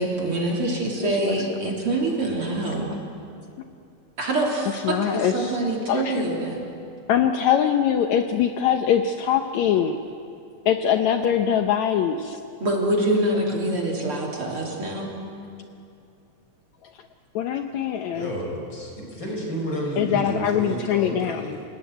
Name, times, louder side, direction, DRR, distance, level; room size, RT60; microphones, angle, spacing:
voice 1, 0.0-2.9 4.2-6.6 12.6-15.1, right 1 dB, 45° right, -2 dB, 4.1 m, -25 dB
voice 2, 1.0-1.7 4.7-5.6 5.9-6.2 7.1-10.0 10.7-12.4 16.8-17.1 17.3-18.3 20.0-21.6, left 9 dB, 70° left, 6 dB, 2.0 m, -23 dB
voice 3, 18.1-21.6, equal, 35° left, 0 dB, 6.2 m, -31 dB
30.0 x 18.0 x 9.3 m, 2.6 s
omnidirectional pair, 3.6 m